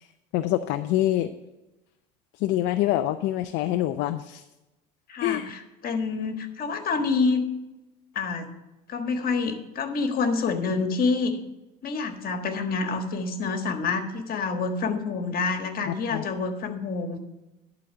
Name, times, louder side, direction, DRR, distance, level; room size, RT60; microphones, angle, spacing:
voice 1, 0.3-1.3 2.4-4.4 5.2-5.5 15.9-16.2, left 14 dB, 60° left, 9 dB, 0.5 m, -25 dB
voice 2, 5.1-7.4 8.1-8.5 8.9-11.4 11.8-17.2, left 4 dB, 45° left, 7 dB, 1.5 m, -27 dB
11.5 x 4.1 x 7.9 m, 1.0 s
hypercardioid pair, 80°, 21 cm